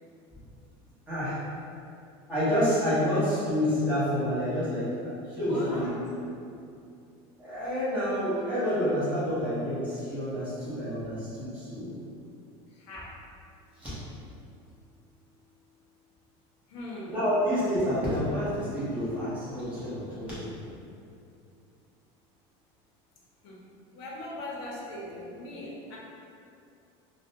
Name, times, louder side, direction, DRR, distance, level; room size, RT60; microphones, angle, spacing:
voice 1, 1.1-1.4 2.3-5.9 7.4-12.0 13.8-13.9 17.1-20.6, equal, 10° right, -12 dB, 0.8 m, -28 dB
voice 2, 5.4-5.9 12.7-13.1 16.7-17.1 23.4-23.6 23.9-26.0, left 1 dB, 65° left, -4 dB, 0.5 m, -39 dB
2.4 x 2.0 x 2.7 m, 2.5 s
cardioid pair, 170°, 14 cm